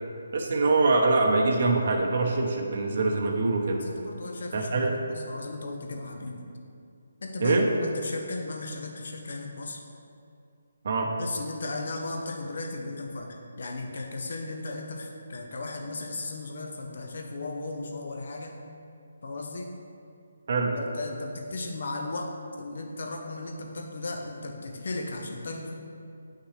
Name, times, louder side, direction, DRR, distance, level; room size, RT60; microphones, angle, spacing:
voice 1, 0.3-3.8 4.5-4.9 7.4-7.6 10.8-11.1 20.5-20.7, right 3 dB, 55° right, 1 dB, 0.9 m, -24 dB
voice 2, 3.8-6.4 7.2-9.8 11.0-18.6 19.2-19.7 20.7-25.8, left 2 dB, 65° left, 3 dB, 1.0 m, -36 dB
8.9 x 5.8 x 3.3 m, 2.5 s
hypercardioid pair, 160°, 0 cm